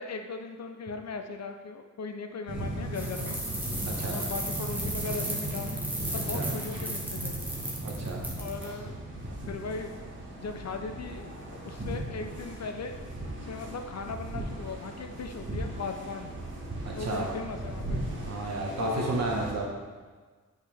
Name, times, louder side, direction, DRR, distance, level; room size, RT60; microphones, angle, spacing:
voice 1, 0.0-3.4 4.1-5.7 6.0-7.3 8.4-9.9 10.4-11.3 11.6-13.0 13.5-16.3 17.0-18.0 18.8-19.2, left 4 dB, 55° left, 6 dB, 0.6 m, -38 dB
sound 1, 2.5-19.5, right 1 dB, 40° right, 1.6 m, -37 dB
sound 2, 2.9-8.6, right 1 dB, 5° right, 1.4 m, -36 dB
voice 2, 7.8-8.2 16.8-17.3 18.2-19.7, right 2 dB, 55° right, -1 dB, 1.2 m, -32 dB
9.1 x 5.5 x 3.4 m, 1.4 s
wide cardioid pair, 140°, 31 cm